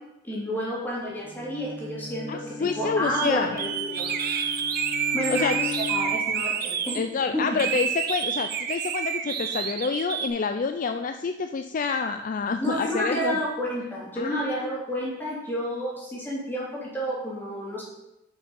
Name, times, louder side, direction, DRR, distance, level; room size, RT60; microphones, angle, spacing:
voice 1, 0.2-4.1 5.1-7.0 7.3-7.6 12.6-17.8, equal, 10° left, -5 dB, 3.0 m, -30 dB
Bowed string instrument, 1.1-6.4, left 4 dB, 90° right, 2.7 m, -37 dB
voice 2, 2.3-3.6 5.3-5.6 6.9-13.4 14.2-14.8, left 5 dB, 45° left, 8 dB, 0.4 m, -28 dB
sound 1, 3.1-3.3 3.6-7.0 7.6-10.3, right 7 dB, 55° right, 0.8 m, -28 dB
8.1 x 6.1 x 5.3 m, 0.93 s
head